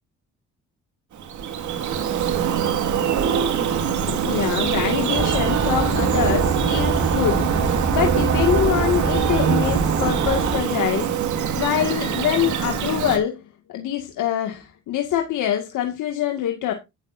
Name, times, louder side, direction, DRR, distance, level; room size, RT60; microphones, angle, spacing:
Bird vocalization bird call bird song, 1.1-13.2, right 8 dB, 75° right, 2.1 m, -24 dB
voice 1, 4.1-13.4 13.7-16.7, left 10 dB, 80° left, 2.1 m, -25 dB
sound 1, 5.1-10.6, right 4 dB, 60° right, 5.5 m, -24 dB
11.0 x 10.5 x 2.7 m
cardioid pair, 90°, 30 cm